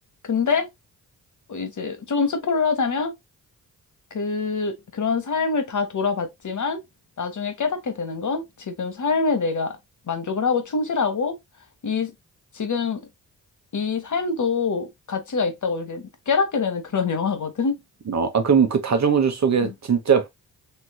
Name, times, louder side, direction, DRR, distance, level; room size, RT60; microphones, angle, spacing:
voice 1, 0.2-0.7 1.5-3.1 4.1-6.8 7.2-9.8 10.1-11.4 11.8-12.1 12.5-13.0 13.7-17.8 19.6-19.7, left 5 dB, 45° left, 1.2 m, -25 dB
voice 2, 18.1-20.3, right 6 dB, 40° right, 1.1 m, -20 dB
3.5 x 3.1 x 2.2 m
supercardioid pair, 40°, 40 cm